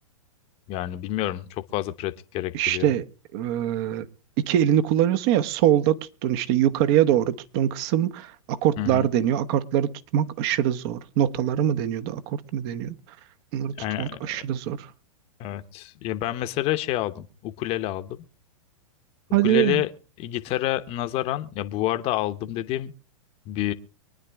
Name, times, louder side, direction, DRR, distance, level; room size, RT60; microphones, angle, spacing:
voice 1, 0.7-2.9 8.8-9.1 13.8-14.2 15.4-18.2 19.4-19.9 20.2-22.9 23.5-23.7, left 14 dB, 35° left, 0.9 m, -28 dB
voice 2, 2.5-3.0 3.3-4.0 4.4-12.9 13.5-14.9 19.3-19.8, right 11 dB, 45° right, 1.1 m, -23 dB
24.0 x 9.8 x 3.5 m
hypercardioid pair, 125°, 18 cm